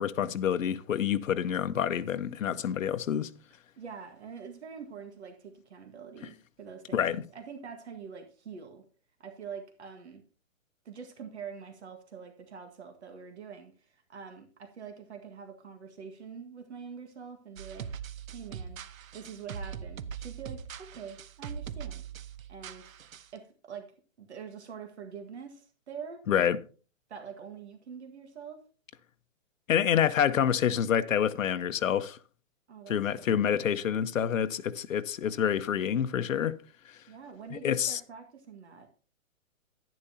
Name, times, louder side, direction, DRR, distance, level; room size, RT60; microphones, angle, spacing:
voice 1, 0.0-3.3 6.9-7.2 26.3-26.6 29.7-32.2 32.9-36.6 37.5-38.0, left 9 dB, 75° left, 1.0 m, -27 dB
voice 2, 3.8-8.8 9.2-10.2 10.9-17.9 18.3-18.8 19.1-22.0 22.5-23.0 23.3-23.9 24.2-26.2 27.1-28.6 32.7-33.7 37.1-38.9, right 6 dB, 55° right, 1.8 m, -45 dB
sound 1, 17.6-23.4, right 7 dB, 80° right, 1.0 m, -41 dB
11.0 x 10.5 x 2.8 m
hypercardioid pair, 180°, 40 cm